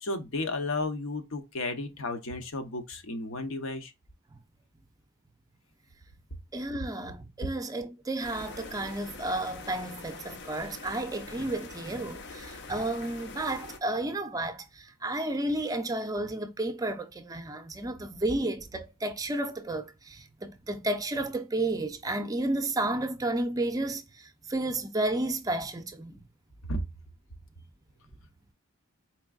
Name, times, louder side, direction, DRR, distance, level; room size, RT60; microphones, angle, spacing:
voice 1, 0.0-3.9 26.7-26.8, left 2 dB, 80° left, 0.9 m, -33 dB
voice 2, 6.5-26.2, right 2 dB, 20° right, 0.5 m, -32 dB
sound 1, 8.2-13.8, left 3 dB, 60° left, 0.7 m, -44 dB
4.5 x 3.5 x 2.3 m
head